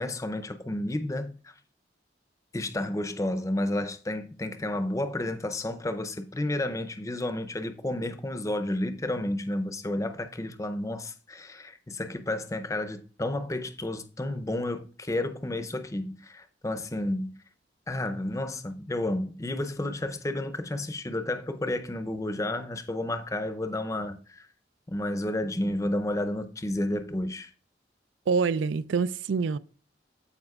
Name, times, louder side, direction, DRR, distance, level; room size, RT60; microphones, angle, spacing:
voice 1, 0.0-1.5 2.5-17.3 17.9-24.5 24.9-27.5, left 1 dB, 15° left, 0.6 m, -31 dB
voice 2, 28.3-29.6, right 5 dB, 90° right, 0.4 m, -26 dB
14.0 x 4.9 x 2.4 m
head